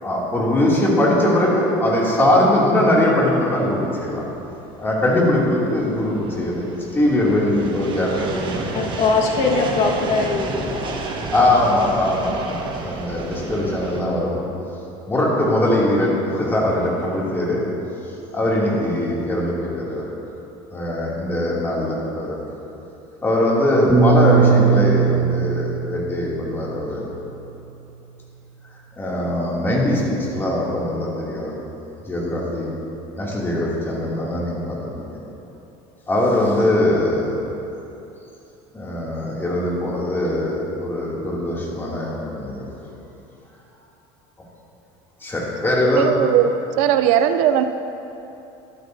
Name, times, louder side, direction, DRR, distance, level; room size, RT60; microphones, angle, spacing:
voice 1, 0.0-4.2 4.8-8.7 11.3-14.4 15.1-17.6 18.3-20.1 20.7-22.4 23.2-27.0 29.0-31.5 32.0-32.7 33.2-35.2 36.1-37.3 38.7-42.7 45.2-46.1, left 1 dB, 15° left, -5 dB, 2.7 m, -21 dB
sound 1, 3.1-14.0, right 3 dB, 35° right, 1.2 m, -32 dB
voice 2, 8.7-11.1, left 3 dB, 55° left, -1 dB, 1.6 m, -21 dB
Piano, 23.9-28.3, right 5 dB, 10° right, 1.6 m, -20 dB
voice 3, 45.8-46.5 46.8-47.6, right 10 dB, 70° right, 10 dB, 0.5 m, -18 dB
14.0 x 12.5 x 2.7 m, 2.9 s
supercardioid pair, 130°, 13 cm